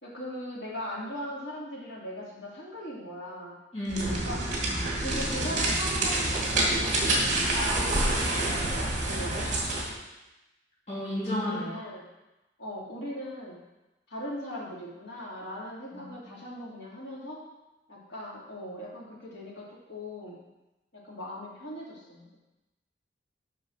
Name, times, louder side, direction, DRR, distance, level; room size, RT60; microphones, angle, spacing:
voice 1, 0.0-3.6 4.2-4.5 5.0-8.7 9.0-9.4 11.4-12.0 12.6-13.6 14.1-17.5 17.9-20.4 20.9-22.4, equal, 80° left, -5 dB, 2.7 m, -39 dB
voice 2, 3.7-4.3 10.9-11.8 15.9-16.2, left 1 dB, 35° left, -10 dB, 3.2 m, -32 dB
sound 1, 3.9-9.9, right 1 dB, 45° right, 2.0 m, -27 dB
7.2 x 5.4 x 6.4 m, 1.0 s
head